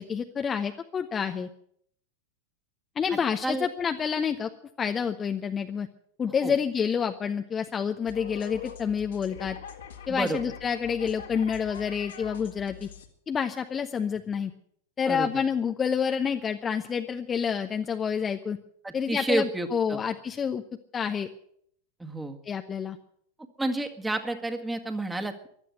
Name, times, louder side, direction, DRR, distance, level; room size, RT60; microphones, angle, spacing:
voice 1, 0.0-1.5 3.0-4.5 4.8-5.9 6.2-9.6 10.1-12.9 13.3-14.5 15.0-18.6 18.9-20.6 20.9-21.3 22.5-23.0, left 7 dB, 20° left, 6 dB, 0.9 m, -28 dB
sound 1, 8.1-13.1, left 8 dB, 65° left, 2.2 m, -44 dB
voice 2, 10.1-10.5 15.1-15.4 18.8-20.0 22.0-22.4 23.6-25.5, right 2 dB, 10° right, 5 dB, 1.9 m, -30 dB
15.5 x 12.0 x 7.8 m, 0.67 s
figure-of-eight pair, 90°, 0 cm